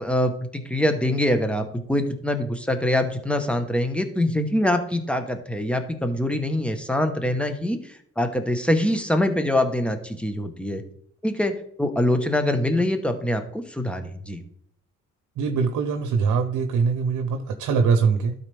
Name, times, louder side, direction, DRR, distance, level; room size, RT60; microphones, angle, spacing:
voice 1, 0.0-10.8 11.2-14.4, left 1 dB, 5° left, 1.0 m, -24 dB
voice 2, 15.4-18.3, right 5 dB, 75° right, 0.9 m, -22 dB
12.0 x 4.1 x 3.4 m
cardioid pair, 90°, 30 cm